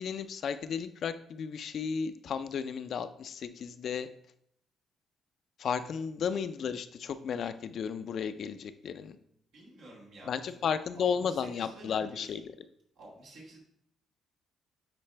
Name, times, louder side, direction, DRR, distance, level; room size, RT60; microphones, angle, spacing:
voice 1, 0.0-4.1 5.6-9.2 10.3-12.4, left 7 dB, 65° left, 11 dB, 0.4 m, -34 dB
voice 2, 9.5-12.4 13.0-13.6, right 1 dB, 85° right, -5 dB, 2.4 m, -51 dB
9.0 x 4.2 x 3.3 m, 0.70 s
cardioid pair, 90°, 0 cm